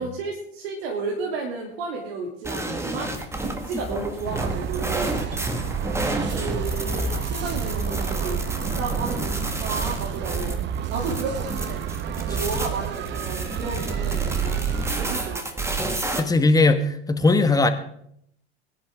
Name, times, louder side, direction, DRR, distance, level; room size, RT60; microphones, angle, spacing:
voice 1, 0.0-3.1 3.4-5.2 6.3-8.4 8.8-10.5 10.9-11.8 12.1-14.6 14.9-15.6, right 3 dB, 60° right, -1 dB, 2.8 m, -32 dB
sound 1, 2.4-16.2, right 3 dB, 10° right, 1.5 m, -29 dB
sound 2, 4.2-15.4, right 10 dB, 30° right, 0.9 m, -32 dB
voice 2, 16.2-17.7, left 3 dB, 10° left, 9 dB, 1.2 m, -19 dB
21.5 x 10.5 x 3.6 m, 0.70 s
figure-of-eight pair, 85°, 34 cm